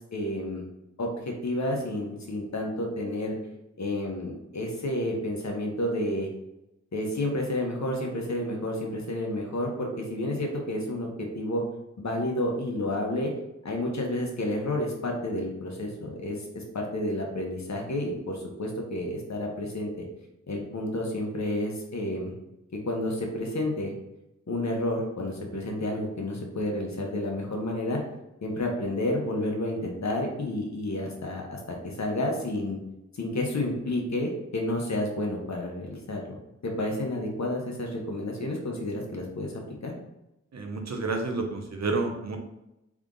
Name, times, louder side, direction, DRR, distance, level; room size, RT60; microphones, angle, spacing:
voice 1, 0.1-0.6 1.0-3.4 3.8-6.3 6.9-11.6 12.0-13.3 13.6-20.0 20.5-22.3 22.7-23.9 24.5-28.0 28.4-32.8 33.1-36.4 36.6-39.9, left 1 dB, 70° left, 0 dB, 1.1 m, -30 dB
voice 2, 40.5-42.4, right 3 dB, 65° right, 3 dB, 0.8 m, -30 dB
3.6 x 3.5 x 3.8 m, 0.89 s
wide cardioid pair, 95°, 29 cm